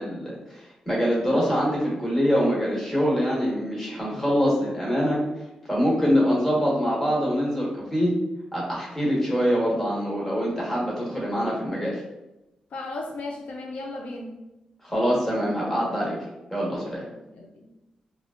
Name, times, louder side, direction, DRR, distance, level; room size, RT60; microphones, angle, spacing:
voice 1, 0.0-5.2 5.7-8.1 8.5-12.0 14.8-16.2 16.5-17.0, equal, 15° left, -5 dB, 1.2 m, -24 dB
voice 2, 12.7-14.4 17.3-17.7, left 2 dB, 75° left, 0 dB, 0.5 m, -35 dB
3.4 x 2.3 x 2.4 m, 0.96 s
cardioid pair, 105°, 2 cm